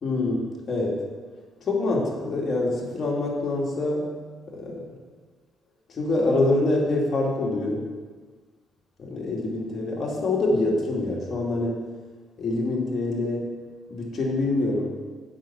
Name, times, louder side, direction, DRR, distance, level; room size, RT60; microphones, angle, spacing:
voice 1, 0.0-1.0 1.6-4.1 4.5-4.9 5.9-7.9 9.0-11.8 12.4-13.5 13.9-14.9, left 2 dB, 50° left, -3 dB, 2.5 m, -25 dB
7.5 x 6.0 x 7.0 m, 1.4 s
cardioid pair, 90°, 0 cm